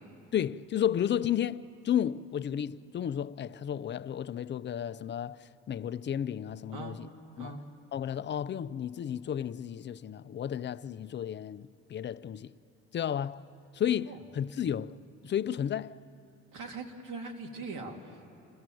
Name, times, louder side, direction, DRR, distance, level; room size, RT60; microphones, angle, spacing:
voice 1, 0.3-7.1 7.4-7.6 7.9-12.5 12.9-13.4 13.7-15.0 15.2-16.0, left 9 dB, 35° left, 0.5 m, -32 dB
voice 2, 6.7-7.0 7.4-7.6 14.1-14.2 16.5-18.3, right 3 dB, 70° right, 2.3 m, -41 dB
27.0 x 16.0 x 7.7 m
cardioid pair, 95°, 32 cm